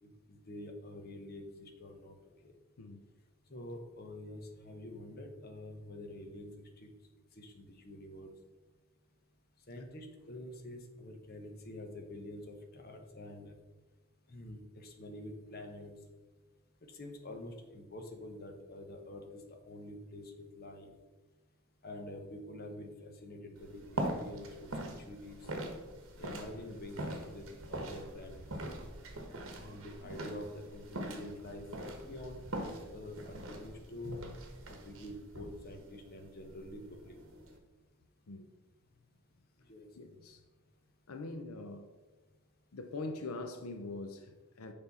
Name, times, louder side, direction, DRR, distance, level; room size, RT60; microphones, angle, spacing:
voice 1, 0.0-2.2 2.4-2.6 3.5-6.9 7.3-8.3 9.7-13.6 14.3-15.9 16.8-20.9 21.8-25.5 26.1-28.5 29.5-34.2 34.7-37.2 39.6-39.9, left 1 dB, 45° left, 0.9 m, -47 dB
sound 1, 23.6-37.6, right 1 dB, 60° right, 1.1 m, -43 dB
voice 2, 40.0-40.4 41.1-41.9 42.7-44.7, left 2 dB, 85° left, 0.6 m, -43 dB
6.8 x 5.2 x 4.1 m
head